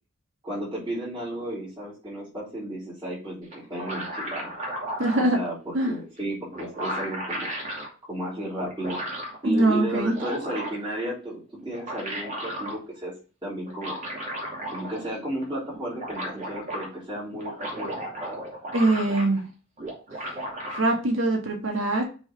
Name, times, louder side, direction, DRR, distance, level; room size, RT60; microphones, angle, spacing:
voice 1, 0.4-4.5 5.1-7.5 8.0-9.0 9.4-13.1 13.4-14.0 14.7-18.4, right 1 dB, 25° right, -10 dB, 3.2 m, -33 dB
sound 1, 3.5-5.2 6.2-6.3 6.5-7.9 8.6-9.4 9.9-10.9 11.6-12.8 13.7-15.1 15.4-15.5 15.7-16.9 17.3-19.5 19.8-20.8, right 1 dB, 40° right, 2.5 m, -34 dB
voice 2, 5.0-5.4 5.7-5.9 9.4-10.2 18.7-19.4 20.7-22.0, right 2 dB, 80° right, 1 dB, 1.7 m, -23 dB
6.1 x 4.2 x 4.9 m, 0.35 s
head